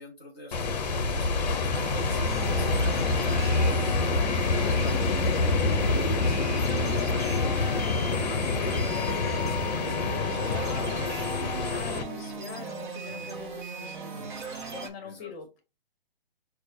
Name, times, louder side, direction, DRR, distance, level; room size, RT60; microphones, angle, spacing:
voice 1, 0.0-3.1 8.2-9.2 13.0-13.3 14.1-14.6 15.0-15.3, left 1 dB, 10° right, 0.4 m, -48 dB
sound 1, 0.5-12.0, left 3 dB, 45° left, 0.7 m, -26 dB
sound 2, 1.7-14.9, right 4 dB, 50° right, 0.9 m, -38 dB
voice 2, 1.9-8.7 9.0-15.7, left 5 dB, 20° left, 1.4 m, -45 dB
6.4 x 2.3 x 2.6 m
hypercardioid pair, 165°, 31 cm